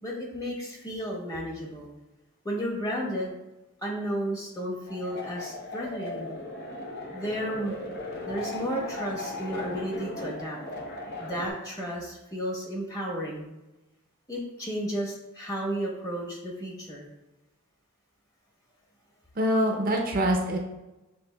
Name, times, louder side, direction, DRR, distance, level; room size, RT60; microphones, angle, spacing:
voice 1, 0.0-1.9 2.4-3.3 3.8-6.4 7.1-7.8 8.2-10.6 11.2-13.4 14.3-17.1, equal, 15° left, -2 dB, 1.1 m, -33 dB
sound 1, 4.9-11.5, left 2 dB, 50° left, 0.8 m, -37 dB
voice 2, 19.4-20.6, equal, 40° right, 1 dB, 0.5 m, -24 dB
6.9 x 3.4 x 2.2 m, 1.0 s
head